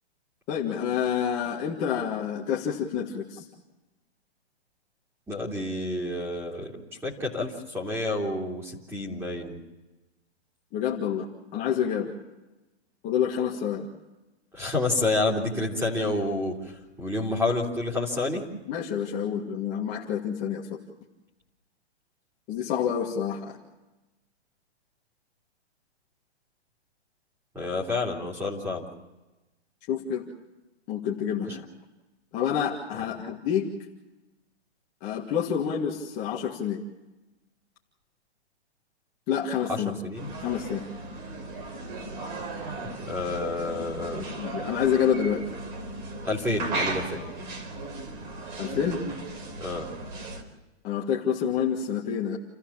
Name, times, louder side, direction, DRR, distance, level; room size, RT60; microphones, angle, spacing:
voice 1, 0.5-3.5 10.7-11.3 11.5-12.1 13.0-13.9 18.7-20.7 22.5-23.6 29.9-30.2 30.9-31.7 32.3-33.7 35.0-36.8 39.3-39.9 40.4-40.9 43.8-43.9 44.1-45.4 48.6-49.0 50.8-52.4, left 8 dB, 25° left, -3 dB, 1.8 m, -28 dB
voice 2, 5.3-6.7 7.0-9.6 14.5-18.4 27.5-28.8 31.5-31.6 39.7-40.3 43.1-44.2 46.2-47.2 49.6-49.9, left 2 dB, 5° right, -1 dB, 3.2 m, -29 dB
sound 1, 40.1-50.4, right 2 dB, 45° right, 4.0 m, -36 dB
29.0 x 15.0 x 7.3 m, 1.1 s
hypercardioid pair, 160°, 33 cm